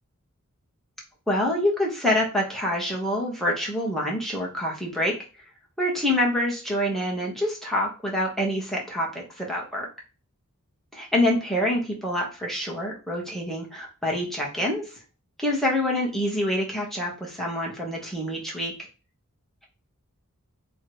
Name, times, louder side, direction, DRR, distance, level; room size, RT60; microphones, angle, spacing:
voice 1, 1.3-5.1 5.8-9.9 10.9-14.9 15.4-18.7, left 1 dB, ahead, -3 dB, 1.4 m, -26 dB
3.5 x 3.2 x 4.5 m, 0.33 s
head